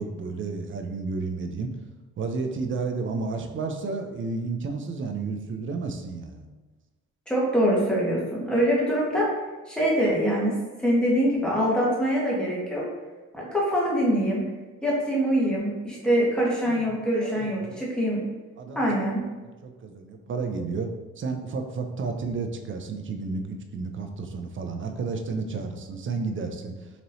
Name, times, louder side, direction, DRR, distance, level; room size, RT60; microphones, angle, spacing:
voice 1, 0.0-1.7 2.2-6.4 16.7-17.0 17.3-17.8 18.6-19.0 19.6-20.9 21.2-26.9, right 4 dB, 40° right, 5 dB, 0.6 m, -32 dB
voice 2, 7.3-9.3 9.7-12.8 13.3-14.4 14.8-18.2 18.7-19.2, equal, 5° left, -5 dB, 1.3 m, -24 dB
4.1 x 3.0 x 2.7 m, 1.2 s
cardioid pair, 90°, 30 cm